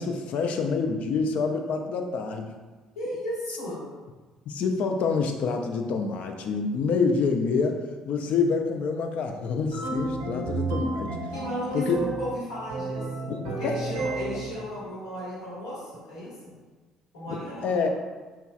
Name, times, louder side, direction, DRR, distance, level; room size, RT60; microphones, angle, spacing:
voice 1, 0.0-2.5 4.5-7.8 8.1-11.2 11.7-12.0 13.3-13.8 14.1-14.2 17.3-17.4 17.6-17.9, left 5 dB, 55° left, 4 dB, 0.4 m, -27 dB
voice 2, 2.9-3.8 11.3-16.6 17.1-17.9, left 1 dB, 80° left, -7 dB, 1.2 m, -35 dB
sound 1, 9.7-12.3 12.7-14.6, right 3 dB, 75° right, 0.7 m, -31 dB
4.5 x 3.0 x 2.3 m, 1.3 s
figure-of-eight pair, 50°, 3 cm